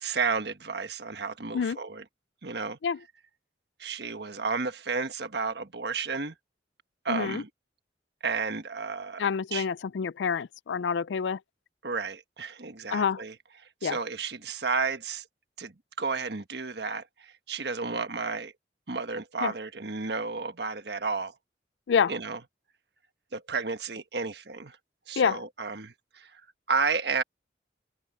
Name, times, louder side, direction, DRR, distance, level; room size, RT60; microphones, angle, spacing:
voice 1, 0.0-2.0 2.4-2.8 3.8-6.3 7.0-7.5 8.2-9.7 11.8-15.2 15.6-18.5 18.9-21.3 22.1-22.4 23.3-24.8 25.1-26.4 26.7-27.2, right 4 dB, 70° right, 1.4 m, -32 dB
voice 2, 7.1-7.4 9.2-11.4 12.9-13.2 13.8-14.0 19.4-19.5 21.9-22.1 25.2-25.4, left 6 dB, 90° left, 0.4 m, -27 dB
open air
head